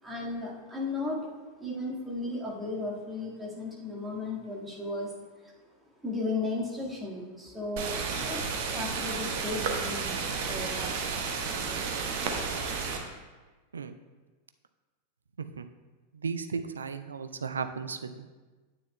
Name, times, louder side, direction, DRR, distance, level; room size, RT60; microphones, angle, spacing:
voice 1, 0.0-1.2 1.6-5.1 6.0-8.0 8.2-8.4 8.7-11.2, left 2 dB, 10° right, -4 dB, 1.7 m, -35 dB
sound 1, 7.8-13.0, right 5 dB, 50° right, 0.9 m, -32 dB
voice 2, 16.1-18.3, right 5 dB, 70° right, 9 dB, 0.4 m, -35 dB
9.4 x 8.9 x 2.2 m, 1.3 s
figure-of-eight pair, 90°, 0 cm